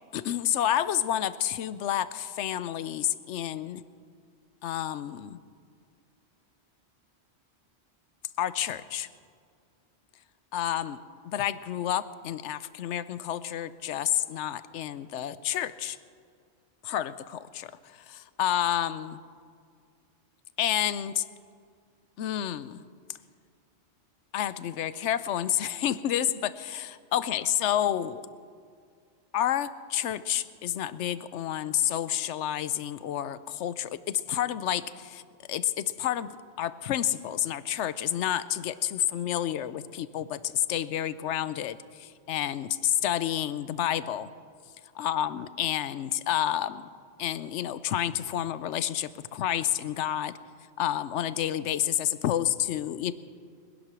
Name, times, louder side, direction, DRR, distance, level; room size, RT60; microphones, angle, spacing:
voice 1, 0.1-3.8 4.6-5.4 8.4-9.1 10.5-16.0 16.8-17.7 18.1-19.2 20.6-21.2 22.2-22.8 24.3-28.2 29.3-35.2 35.5-36.3 36.6-44.3 45.0-46.8 47.2-50.3 50.8-53.1, left 11 dB, 80° left, 15 dB, 0.9 m, -29 dB
21.5 x 10.5 x 6.1 m, 2.1 s
omnidirectional pair, 1.2 m